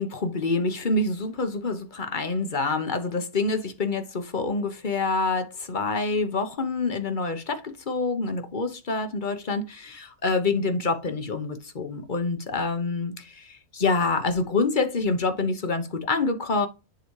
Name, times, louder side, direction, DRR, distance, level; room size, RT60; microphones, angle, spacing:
voice 1, 0.0-16.7, left 3 dB, 35° left, 1.0 m, -27 dB
10.5 x 3.9 x 3.2 m
omnidirectional pair, 1.6 m